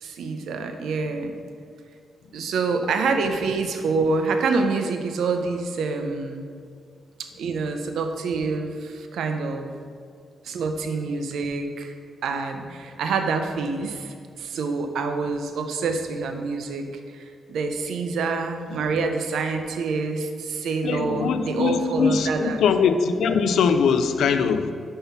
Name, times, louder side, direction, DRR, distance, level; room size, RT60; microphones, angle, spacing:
voice 1, 0.0-1.4 2.3-6.5 7.2-9.7 10.4-11.9 12.2-16.9 17.1-22.6, right 4 dB, 85° right, 6 dB, 0.7 m, -26 dB
voice 2, 20.8-24.7, left 6 dB, 85° left, 9 dB, 0.4 m, -21 dB
5.5 x 5.5 x 5.8 m, 2.2 s
cardioid pair, 85°, 0 cm